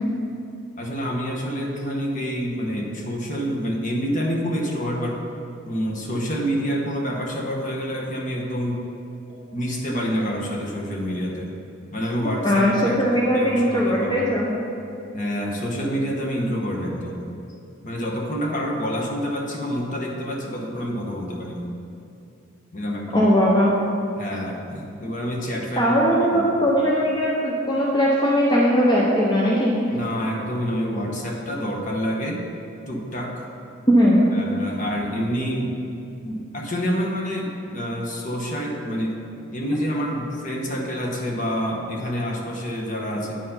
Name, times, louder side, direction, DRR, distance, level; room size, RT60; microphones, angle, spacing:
voice 1, 0.8-5.2 5.7-8.8 9.5-11.5 11.9-14.3 15.1-17.2 17.8-21.7 22.7-23.3 24.2-25.9 26.3-26.5 29.9-32.4 32.9-33.5 34.3-35.8 36.2-39.2 39.5-43.3, equal, 40° left, 0 dB, 1.0 m, -27 dB
voice 2, 12.4-14.5 23.1-23.7 25.8-29.7 33.9-34.3, equal, 20° left, -5 dB, 0.8 m, -19 dB
9.0 x 4.6 x 5.6 m, 2.6 s
head